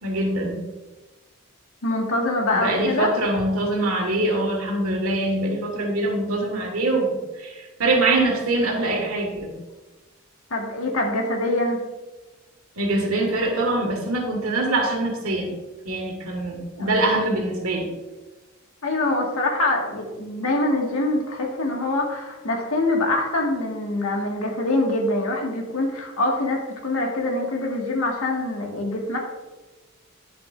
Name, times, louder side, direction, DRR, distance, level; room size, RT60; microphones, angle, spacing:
voice 1, 0.0-0.7 2.5-9.5 12.8-15.5 15.9-17.9, right 2 dB, 90° right, 1 dB, 1.9 m, -24 dB
voice 2, 1.8-3.1 10.5-11.8 16.7-16.9 18.8-29.2, left 2 dB, 75° left, 0 dB, 1.9 m, -24 dB
10.0 x 7.7 x 2.6 m, 1.1 s
head